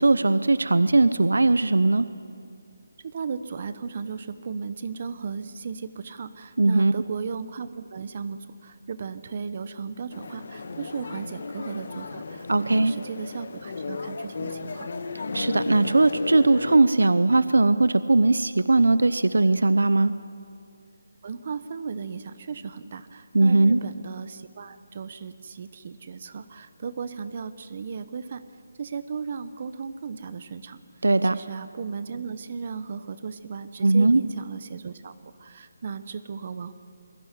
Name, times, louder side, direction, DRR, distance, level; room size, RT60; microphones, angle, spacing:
voice 1, 0.0-2.1 6.6-6.9 12.5-12.9 15.3-20.1 23.3-23.8 31.0-31.3 33.8-34.2, right 2 dB, 80° right, 14 dB, 0.8 m, -19 dB
voice 2, 3.0-14.9 21.2-28.4 28.8-35.1 35.4-36.7, right 5 dB, 40° right, 12 dB, 1.0 m, -36 dB
sound 1, 10.1-16.8, left 3 dB, 55° left, 1.7 m, -35 dB
21.5 x 17.0 x 9.9 m, 2.3 s
figure-of-eight pair, 160°, 0 cm